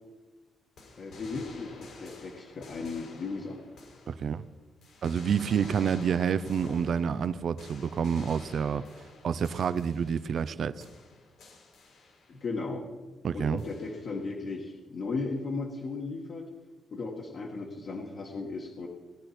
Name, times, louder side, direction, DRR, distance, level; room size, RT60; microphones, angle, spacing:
sound 1, 0.8-4.5 4.8-10.5 10.8-12.5 13.6-14.3, left 2 dB, 75° left, 4.3 m, -50 dB
voice 1, 1.0-3.6 12.3-12.9 13.3-16.5 16.9-18.9, left 3 dB, 50° left, -1 dB, 1.6 m, -36 dB
voice 2, 4.1-4.4 5.0-8.8 9.2-10.9 13.2-13.6, right 7 dB, 55° right, 14 dB, 0.5 m, -28 dB
18.5 x 10.5 x 4.3 m, 1.3 s
cardioid pair, 145°, 0 cm